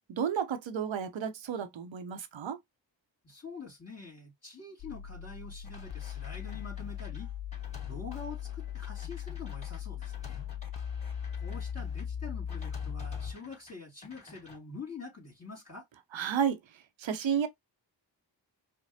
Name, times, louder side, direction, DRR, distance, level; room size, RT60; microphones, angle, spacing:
voice 1, 0.1-2.6 16.1-16.6 17.0-17.5, right 8 dB, 85° right, 0.8 m, -31 dB
voice 2, 3.2-7.3 7.9-10.4 11.4-15.9, left 4 dB, 35° left, 2.5 m, -45 dB
sound 1, 4.8-13.3, left 9 dB, 55° left, 0.6 m, -39 dB
sound 2, 5.6-12.0 12.5-13.7 14.0-14.6, left 3 dB, 15° left, 2.6 m, -53 dB
5.0 x 2.1 x 2.7 m
cardioid pair, 40°, 45 cm